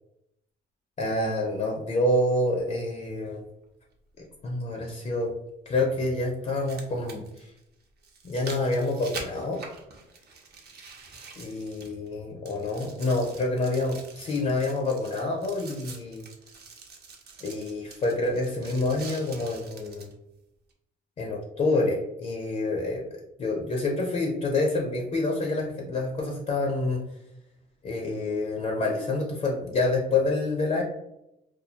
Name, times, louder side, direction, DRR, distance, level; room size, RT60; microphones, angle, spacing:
voice 1, 1.0-3.4 4.4-5.3 5.7-7.5 8.2-9.6 11.4-16.3 17.4-20.1 21.2-23.0 23.4-27.1 27.8-30.8, left 2 dB, 35° left, 0 dB, 0.4 m, -27 dB
sound 1, 3.2-3.3 5.2-5.3 6.4-12.1 12.4-20.1 20.7-20.8, right 4 dB, 55° right, 0.6 m, -45 dB
2.2 x 2.1 x 2.7 m, 0.86 s
cardioid pair, 90°, 20 cm